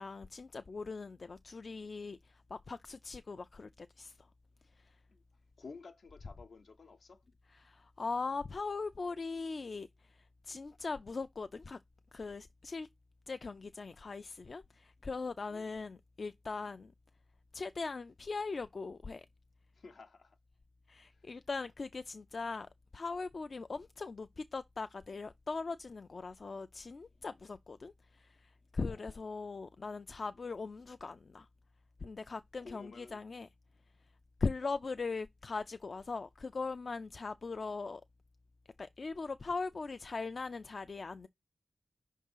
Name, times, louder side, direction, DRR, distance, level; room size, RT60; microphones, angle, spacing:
voice 1, 0.0-4.3 4.8-5.0 7.5-11.8 12.1-12.9 13.3-16.9 17.5-19.3 20.9-31.5 32.0-33.5 34.4-38.0 38.8-41.3, left 4 dB, 60° left, 0.4 m, -40 dB
voice 2, 5.6-7.2 15.5-15.7 19.7-20.4 21.1-21.3 28.9-29.2 32.6-33.2, left 4 dB, 80° left, 0.9 m, -53 dB
5.5 x 3.6 x 5.4 m
cardioid pair, 60°, 0 cm